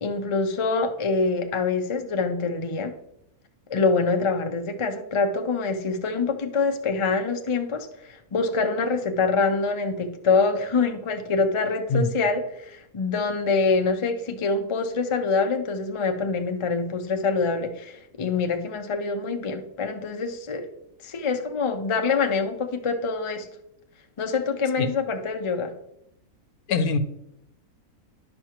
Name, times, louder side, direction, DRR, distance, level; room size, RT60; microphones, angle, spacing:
voice 1, 0.0-2.9 3.7-20.7 21.0-23.5 24.2-25.7, left 4 dB, 50° left, 0.3 m, -25 dB
voice 2, 26.7-27.0, left 3 dB, 75° left, 1.2 m, -22 dB
11.0 x 5.4 x 2.9 m
omnidirectional pair, 1.6 m